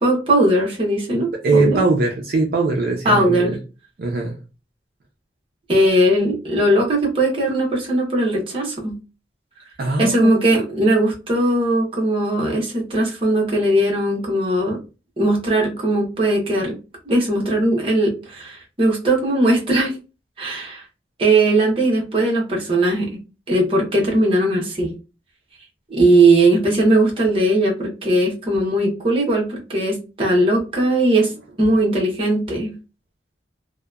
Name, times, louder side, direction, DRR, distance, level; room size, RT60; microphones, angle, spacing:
voice 1, 0.0-1.8 3.0-3.6 5.7-9.0 10.0-14.8 15.2-16.7 17.1-19.9 20.4-20.8 21.2-23.1 23.5-24.9 25.9-31.3 31.6-32.7, right 1 dB, 30° right, -1 dB, 0.8 m, -19 dB
voice 2, 1.3-3.6 4.0-4.4 9.8-10.4, right 3 dB, 55° right, 1 dB, 0.5 m, -20 dB
2.8 x 2.1 x 2.3 m, 0.31 s
head